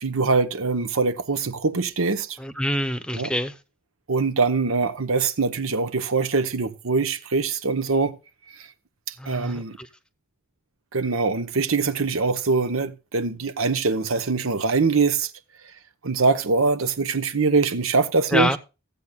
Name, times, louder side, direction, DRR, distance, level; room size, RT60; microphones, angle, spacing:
voice 1, 0.0-2.4 3.1-3.3 4.1-8.2 8.6-8.7 9.1-9.8 10.9-15.3 16.0-18.5, right 4 dB, 85° right, 1.0 m, -23 dB
voice 2, 2.4-3.5 9.2-9.9 18.3-18.6, equal, 5° left, 0.8 m, -26 dB
16.0 x 8.0 x 2.3 m
head